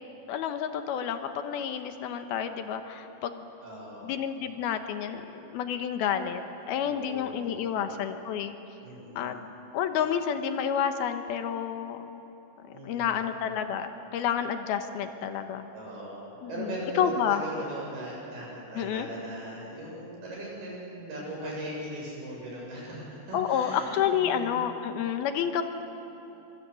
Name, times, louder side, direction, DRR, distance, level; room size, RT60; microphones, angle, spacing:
voice 1, 0.3-3.5 4.0-6.4 6.7-8.5 9.2-9.4 9.7-12.2 12.8-15.7 16.4-17.4 18.8-19.1 23.3-25.6, left 8 dB, 80° left, 7 dB, 2.9 m, -30 dB
voice 2, 3.6-4.1 6.8-8.0 8.8-9.3 12.7-13.3 15.7-24.5, right 1 dB, 75° right, -4 dB, 9.5 m, -39 dB
24.5 x 24.0 x 8.3 m, 3.0 s
omnidirectional pair, 4.6 m